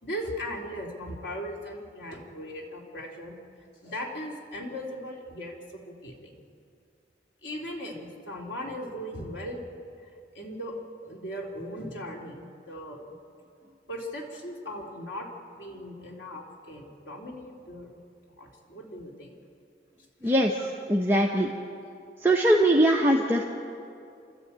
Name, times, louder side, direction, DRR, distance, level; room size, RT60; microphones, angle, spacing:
voice 1, 0.0-3.3 3.8-6.4 7.4-9.6 10.0-10.7 11.0-13.0 13.9-15.3 15.6-18.0 18.4-19.4 20.2-20.7, equal, 90° left, -1 dB, 3.6 m, -38 dB
voice 2, 20.9-21.5 22.2-23.4, right 1 dB, 15° right, -2 dB, 1.1 m, -21 dB
29.5 x 13.0 x 8.9 m, 2.4 s
head